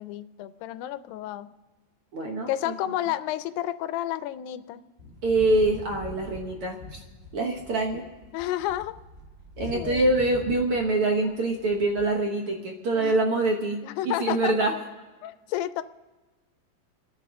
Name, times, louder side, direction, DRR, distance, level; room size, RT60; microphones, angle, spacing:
voice 1, 0.0-1.5 2.5-4.8 8.3-8.9 9.7-10.1 13.0-13.2 13.8-14.5 15.2-15.8, left 13 dB, 85° left, 13 dB, 2.4 m, -31 dB
voice 2, 2.1-2.7 5.2-7.0 7.3-8.0 9.6-13.8 14.0-14.7, right 2 dB, 70° right, 2 dB, 1.3 m, -25 dB
sound 1, 5.0-10.9 11.2-12.1, left 3 dB, 25° right, 1.5 m, -43 dB
28.5 x 10.0 x 3.6 m, 1.2 s
omnidirectional pair, 4.1 m